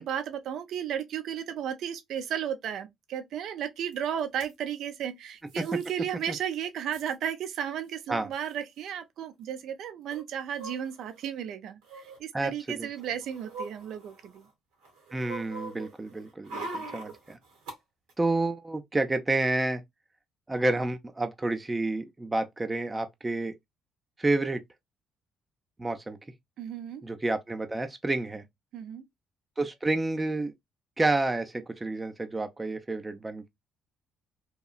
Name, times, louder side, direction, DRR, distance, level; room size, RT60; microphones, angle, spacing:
voice 1, 0.0-14.5 26.6-27.0 28.7-29.0, right 9 dB, 70° right, 0.6 m, -34 dB
sound 1, 3.9-4.0 4.2-4.5 5.5-5.9 6.3-6.4 6.5-7.1 8.0-8.1 8.3-8.5 10.1-11.2 11.8-12.2 12.8-14.5 14.8-17.8 18.1-18.2, right 2 dB, 85° right, 1.0 m, -42 dB
voice 2, 15.1-17.4 18.2-19.8 20.5-23.5 24.2-24.6 25.8-26.2 27.0-28.4 29.6-30.5 31.0-33.5, right 2 dB, 20° right, 0.5 m, -29 dB
2.8 x 2.3 x 2.3 m
supercardioid pair, 65°, 0 cm